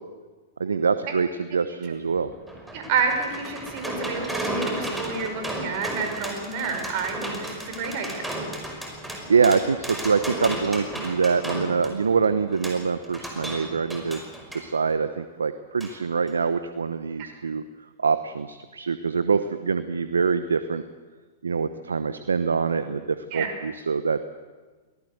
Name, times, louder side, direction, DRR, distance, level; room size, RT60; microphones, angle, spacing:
voice 1, 0.6-2.3 9.3-14.2 14.5-17.6 18.0-20.8 21.4-24.2, right 5 dB, 85° right, 12 dB, 1.0 m, -24 dB
sound 1, 2.2-14.7 15.8-15.9 16.3-16.4, right 1 dB, 5° right, 5.4 m, -34 dB
voice 2, 2.7-8.2 23.3-23.5, right 5 dB, 50° right, 5 dB, 5.4 m, -29 dB
24.0 x 18.0 x 8.0 m, 1.3 s
hypercardioid pair, 110°, 0 cm